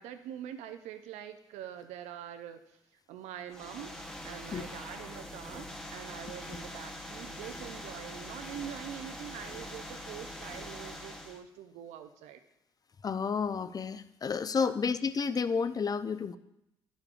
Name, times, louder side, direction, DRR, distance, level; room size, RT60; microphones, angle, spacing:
voice 1, 0.0-3.9 4.2-12.4 14.6-14.7, right 10 dB, 75° right, 8 dB, 0.5 m, -44 dB
sound 1, 3.5-11.4, left 1 dB, 5° left, 1.0 m, -43 dB
voice 2, 13.0-16.4, left 5 dB, 35° left, 13 dB, 0.5 m, -31 dB
11.5 x 5.1 x 2.5 m, 0.84 s
hypercardioid pair, 55°, 12 cm